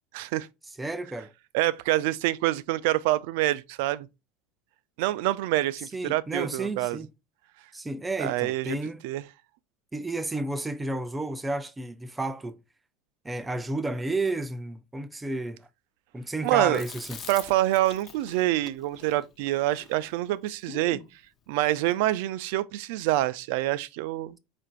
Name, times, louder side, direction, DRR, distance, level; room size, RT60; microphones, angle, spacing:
voice 1, 0.1-0.5 1.5-4.1 5.0-7.0 8.2-8.8 9.0-9.2 16.4-16.8 17.3-21.0 21.5-24.4, right 16 dB, 75° right, 0.4 m, -26 dB
voice 2, 0.8-1.3 5.9-7.1 7.7-9.0 9.9-12.6 13.2-15.7 16.1-17.2, right 2 dB, 15° right, 0.5 m, -31 dB
Chewing mastication, 16.7-21.1, left 6 dB, 35° left, 0.7 m, -45 dB
4.4 x 2.5 x 4.4 m
supercardioid pair, 110°, 0 cm